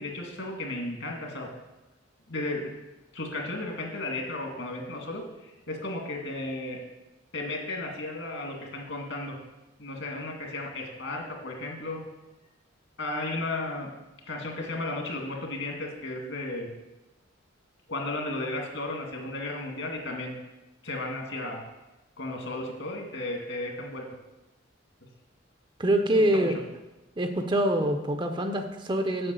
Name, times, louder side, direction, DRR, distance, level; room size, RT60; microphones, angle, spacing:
voice 1, 0.0-1.5 2.3-2.7 3.1-6.8 7.3-9.4 9.8-12.0 13.0-13.9 14.3-16.7 17.9-20.4 20.8-21.6 22.2-24.0 26.0-26.6, left 2 dB, 65° left, 1 dB, 2.2 m, -34 dB
voice 2, 25.8-26.6 27.2-29.3, right 1 dB, 25° right, 6 dB, 0.6 m, -25 dB
7.9 x 6.0 x 7.7 m, 1.0 s
head